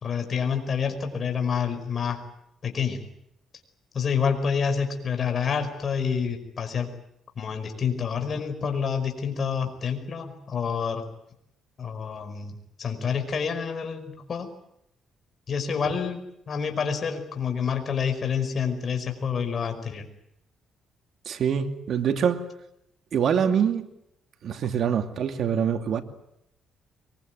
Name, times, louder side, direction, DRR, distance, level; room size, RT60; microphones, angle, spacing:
voice 1, 0.0-2.2 2.6-3.0 3.9-6.9 7.4-11.0 11.8-14.5 15.5-20.1, left 6 dB, 50° left, 5.2 m, -28 dB
voice 2, 21.3-22.4 23.1-23.8 24.4-26.0, right 7 dB, 65° right, 2.5 m, -24 dB
23.5 x 22.5 x 9.4 m
cardioid pair, 90°, 0 cm